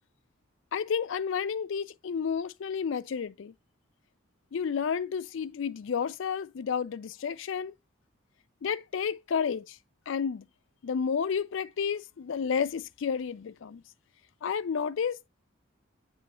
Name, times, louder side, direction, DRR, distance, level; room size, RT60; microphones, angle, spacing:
voice 1, 0.7-3.5 4.5-7.7 8.6-9.6 10.1-10.4 10.8-13.8 14.4-15.3, left 6 dB, 65° left, 0.4 m, -31 dB
8.7 x 3.1 x 4.1 m
head